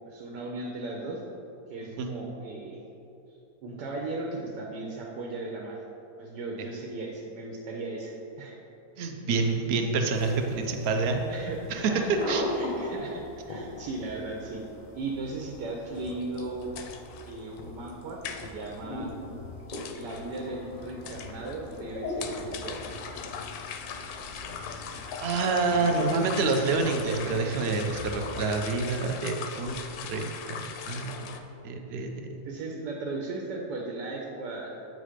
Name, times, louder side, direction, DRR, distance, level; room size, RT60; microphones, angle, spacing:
voice 1, 0.1-1.2 1.7-2.8 3.6-5.8 6.2-8.6 11.3-13.2 13.5-14.6 14.9-16.8 17.3-19.1 19.9-22.8 25.7-26.0 32.4-34.8, right 2 dB, 85° right, -1 dB, 1.3 m, -37 dB
voice 2, 9.0-11.2 11.7-11.9 12.3-12.4 25.2-29.8 30.0-31.4 31.6-32.5, right 3 dB, 70° right, 4 dB, 0.6 m, -28 dB
sound 1, 10.0-29.4, left 2 dB, 45° left, 0.5 m, -41 dB
sound 2, 16.0-31.4, left 6 dB, 70° left, 1.0 m, -41 dB
7.5 x 4.1 x 5.0 m, 2.9 s
omnidirectional pair, 1.8 m